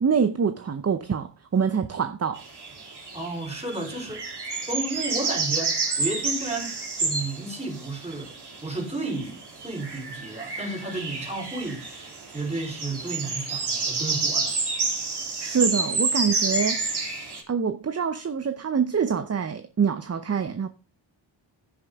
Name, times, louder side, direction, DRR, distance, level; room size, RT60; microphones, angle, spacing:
voice 1, 0.0-2.4 15.4-16.8 17.5-20.7, right 6 dB, 35° right, 0.7 m, -25 dB
sound 1, 2.3-17.4, right 3 dB, 55° right, 3.6 m, -29 dB
voice 2, 3.1-4.2 4.7-8.3 8.6-11.9 12.3-14.6, right 2 dB, 15° right, 4.2 m, -32 dB
15.5 x 6.5 x 3.5 m
cardioid pair, 75°, 46 cm